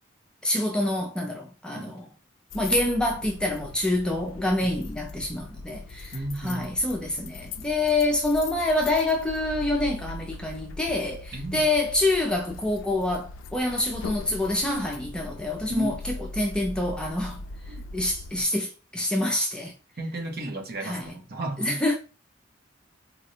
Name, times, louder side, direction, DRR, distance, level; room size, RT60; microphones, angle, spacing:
voice 1, 0.4-2.1 2.5-17.4 17.7-19.7 20.8-21.1 21.6-22.0, left 2 dB, 5° left, 0.5 m, -26 dB
sound 1, 2.5-18.5, left 2 dB, 75° left, 0.4 m, -40 dB
voice 2, 6.1-6.7 11.3-11.6 15.7-16.0 17.7-17.8 20.0-21.8, right 1 dB, 55° right, 0.9 m, -34 dB
4.1 x 2.3 x 2.8 m
head